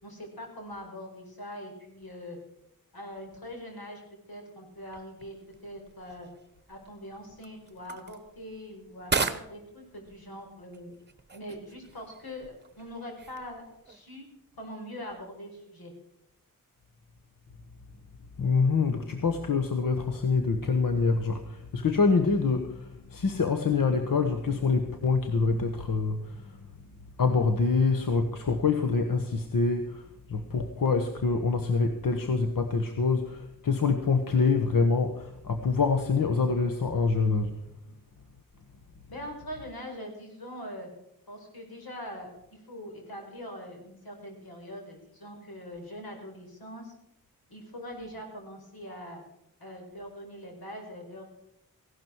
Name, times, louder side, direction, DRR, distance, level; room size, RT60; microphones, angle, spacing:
voice 1, 0.0-2.4 2.9-4.0 4.3-5.4 5.6-6.3 6.7-10.9 11.3-14.2 14.6-15.9 39.1-40.9 41.3-46.9 47.5-49.2 49.6-51.3, equal, 90° left, 2 dB, 5.0 m, -42 dB
sound 1, 4.8-14.0, right 4 dB, 30° right, 1.1 m, -39 dB
voice 2, 18.4-26.5 27.2-37.5, left 4 dB, 65° left, 6 dB, 1.3 m, -26 dB
16.0 x 12.0 x 4.6 m, 0.80 s
wide cardioid pair, 145°, 35 cm